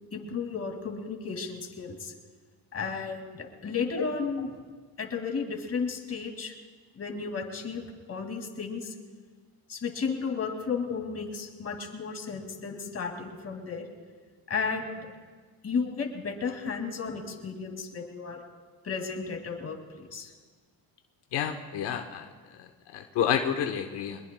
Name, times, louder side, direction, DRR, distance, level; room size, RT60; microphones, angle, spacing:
voice 1, 0.1-2.1 2.7-4.5 5.0-6.5 7.0-8.9 9.7-13.9 14.5-15.1 15.6-18.4 18.8-20.3, left 5 dB, 35° left, 3 dB, 2.3 m, -33 dB
voice 2, 21.3-22.2 22.9-24.2, left 8 dB, 85° left, 4 dB, 1.0 m, -29 dB
23.5 x 21.0 x 2.2 m, 1.5 s
cardioid pair, 120°, 40 cm